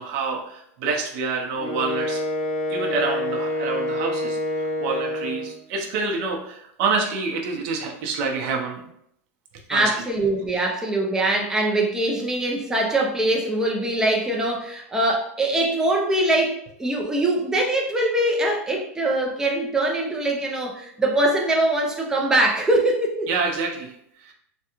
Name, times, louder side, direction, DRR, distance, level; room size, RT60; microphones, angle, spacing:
voice 1, 0.0-2.2 2.7-8.8 9.7-10.0 10.5-10.7 23.3-24.3, right 4 dB, 50° right, 0 dB, 0.7 m, -27 dB
Wind instrument woodwind instrument, 1.6-5.6, left 1 dB, 60° left, 0.8 m, -27 dB
voice 2, 9.7-23.3, right 1 dB, 5° right, 0 dB, 0.5 m, -22 dB
3.4 x 2.2 x 2.9 m, 0.72 s
supercardioid pair, 140°, 8 cm